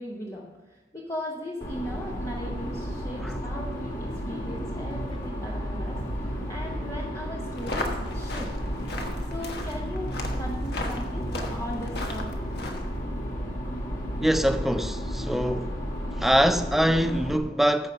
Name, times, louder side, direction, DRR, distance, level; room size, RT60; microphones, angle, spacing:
voice 1, 0.0-8.5 9.3-12.4, left 1 dB, 20° left, 0.8 m, -38 dB
sound 1, 1.6-17.4, equal, 45° left, 2.0 m, -32 dB
sound 2, 7.5-13.0, left 1 dB, 65° left, 1.3 m, -36 dB
voice 2, 14.2-15.8 16.2-17.9, equal, ahead, 0.3 m, -24 dB
14.5 x 5.3 x 5.4 m
head